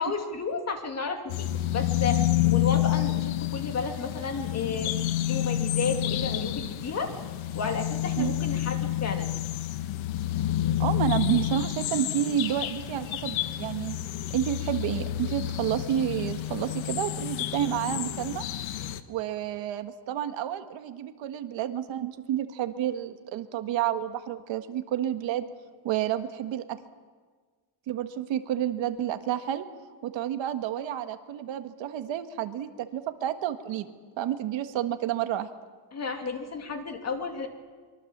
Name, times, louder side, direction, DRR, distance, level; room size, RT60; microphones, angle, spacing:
voice 1, 0.0-4.9 5.3-7.1 7.5-9.3 35.9-37.5, left 4 dB, 30° left, 4 dB, 2.4 m, -32 dB
sound 1, 1.3-19.0, left 12 dB, 70° left, 1.4 m, -29 dB
voice 2, 10.8-14.0 14.3-18.4 19.1-25.5 25.8-26.8 27.9-29.6 30.0-35.5, right 11 dB, 65° right, 8 dB, 1.6 m, -30 dB
24.0 x 23.5 x 7.3 m, 1.5 s
cardioid pair, 175°, 48 cm